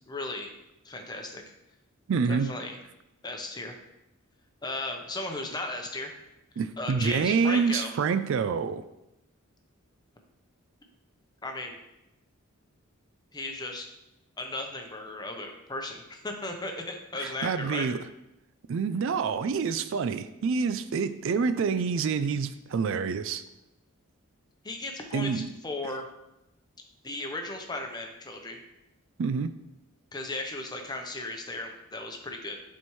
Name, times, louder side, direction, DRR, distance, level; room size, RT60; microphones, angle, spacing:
voice 1, 0.1-0.5 0.8-1.4 2.3-2.8 3.2-3.8 4.6-6.1 6.8-7.9 11.4-11.8 13.3-13.9 14.4-17.9 24.6-26.0 27.0-28.6 30.1-32.6, left 2 dB, 20° left, 3 dB, 0.8 m, -36 dB
voice 2, 2.1-2.5 6.6-8.8 17.2-18.0 18.7-23.4 25.1-25.5 29.2-29.5, right 5 dB, 60° right, 11 dB, 0.3 m, -27 dB
11.0 x 4.4 x 3.1 m, 0.89 s
head